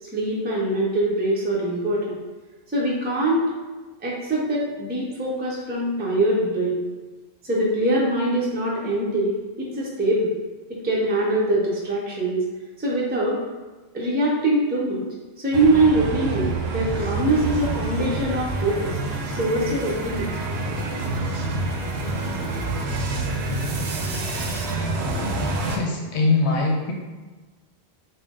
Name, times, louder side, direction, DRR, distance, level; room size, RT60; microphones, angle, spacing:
voice 1, 0.0-2.2 2.7-3.6 4.0-6.8 7.4-10.3 10.7-12.4 12.8-13.4 13.9-15.0 15.4-19.0 19.3-20.3, right 1 dB, 15° right, -4 dB, 0.4 m, -23 dB
sound 1, 15.5-25.8, right 2 dB, 75° right, 0.8 m, -27 dB
voice 2, 25.7-26.9, left 3 dB, 80° left, -1 dB, 1.0 m, -22 dB
3.9 x 2.1 x 3.6 m, 1.3 s
omnidirectional pair, 1.1 m